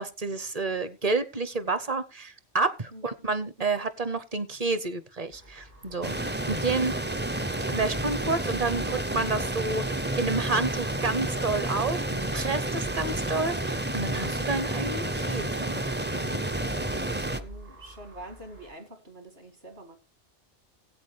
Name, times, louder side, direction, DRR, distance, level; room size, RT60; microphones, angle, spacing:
voice 1, 0.0-6.9 7.7-15.8, right 3 dB, 40° right, 0.8 m, -30 dB
sound 1, 5.3-18.7, right 1 dB, 90° right, 5.5 m, -48 dB
sound 2, 6.0-17.4, right 1 dB, 15° right, 0.4 m, -30 dB
voice 2, 16.1-20.0, right 1 dB, 60° right, 2.5 m, -46 dB
17.5 x 8.3 x 3.3 m
omnidirectional pair, 1.2 m